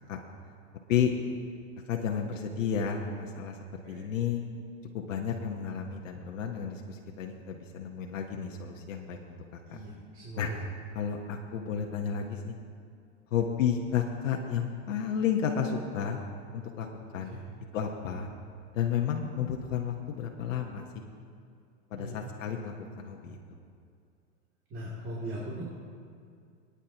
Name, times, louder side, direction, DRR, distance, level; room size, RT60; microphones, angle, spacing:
voice 1, 1.9-4.4 4.9-9.8 10.4-10.5 10.9-12.6 13.3-16.2 16.5-16.9 17.1-17.4 17.7-18.3 18.7-21.0 21.9-23.4, left 8 dB, 80° left, 1 dB, 1.3 m, -32 dB
voice 2, 9.7-10.6 17.3-17.4 22.0-22.1 24.7-25.6, right 1 dB, 35° right, -6 dB, 2.8 m, -39 dB
23.0 x 9.8 x 2.9 m, 2.3 s
hypercardioid pair, 125°, 38 cm